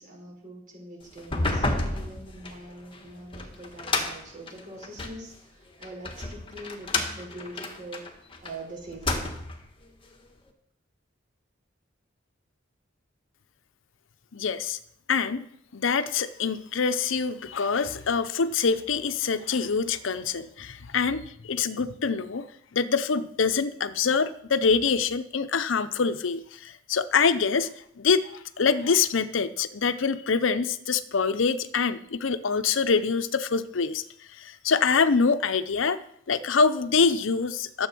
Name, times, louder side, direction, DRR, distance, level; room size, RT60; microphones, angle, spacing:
voice 1, 0.0-8.0 8.4-9.3, right 1 dB, 45° right, -2 dB, 4.7 m, -43 dB
sound 1, 1.2-5.2 5.8-8.5 8.9-9.7, left 2 dB, 25° left, 1.5 m, -30 dB
voice 2, 14.3-14.8 15.1-15.5 15.7-22.5 22.7-27.7 28.0-34.0 34.4-36.0 36.3-37.9, left 5 dB, 70° left, 12 dB, 0.6 m, -25 dB
12.5 x 7.8 x 6.0 m, 0.69 s
head